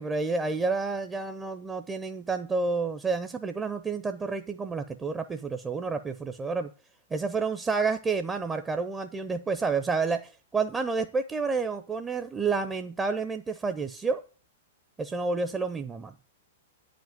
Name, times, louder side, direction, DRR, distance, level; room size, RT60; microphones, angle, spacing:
voice 1, 0.0-6.7 7.1-14.2 15.0-16.1, right 4 dB, 15° right, 8 dB, 0.6 m, -29 dB
9.1 x 5.2 x 7.5 m, 0.36 s
figure-of-eight pair, 100°, 0 cm